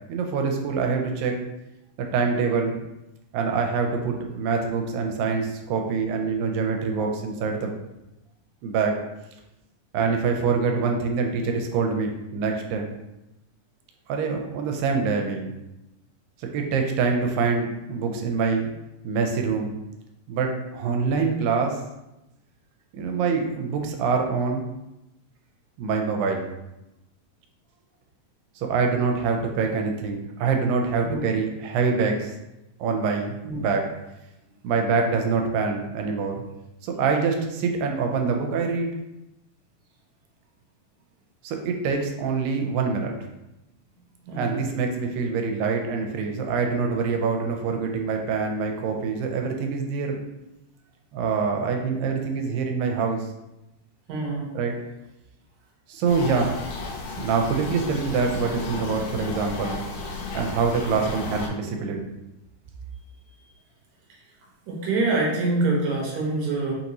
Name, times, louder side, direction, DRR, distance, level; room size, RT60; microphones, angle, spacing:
voice 1, 0.1-1.3 2.0-2.8 3.3-7.7 8.6-9.0 9.9-12.9 14.1-15.5 16.5-18.7 19.0-19.8 20.3-21.8 22.9-24.7 25.8-26.5 28.6-32.3 32.8-33.9 34.6-36.4 36.8-38.9 41.4-43.1 44.4-50.2 51.1-53.3 54.5-54.8 55.9-56.7 57.2-59.9 60.3-62.0, right 5 dB, 90° right, 3 dB, 2.3 m, -25 dB
voice 2, 44.3-44.6 54.1-54.5 64.7-66.7, right 2 dB, 70° right, -3 dB, 2.0 m, -25 dB
sound 1, 56.1-61.5, left 3 dB, 75° left, 2.2 m, -34 dB
5.6 x 2.6 x 2.9 m, 0.93 s
omnidirectional pair, 3.9 m